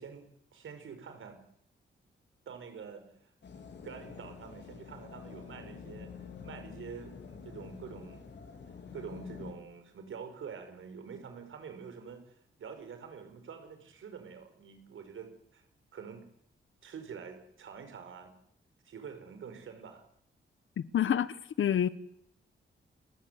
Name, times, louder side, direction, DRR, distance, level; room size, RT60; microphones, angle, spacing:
voice 1, 0.0-1.4 2.5-3.0 3.8-6.1 6.4-8.3 8.9-15.6 15.9-16.2 16.8-18.3 18.8-20.1, right 6 dB, 80° right, 5.5 m, -46 dB
sound 1, 3.4-9.5, left 6 dB, 60° left, 4.1 m, -47 dB
voice 2, 20.8-21.9, left 9 dB, 75° left, 1.2 m, -28 dB
29.5 x 15.0 x 9.6 m
wide cardioid pair, 140°, 20 cm